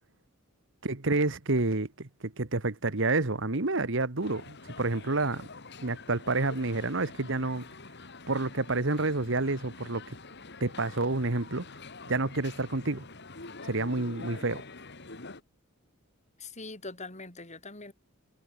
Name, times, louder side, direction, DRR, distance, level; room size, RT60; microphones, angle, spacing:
voice 1, 0.8-5.5 5.8-7.6 8.3-10.1 10.6-11.7 12.1-13.0 13.6-14.6, right 2 dB, 65° right, 1.7 m, -29 dB
sound 1, 4.2-15.4, left 3 dB, 55° left, 3.5 m, -46 dB
voice 2, 16.4-17.9, left 3 dB, 35° left, 6.9 m, -42 dB
head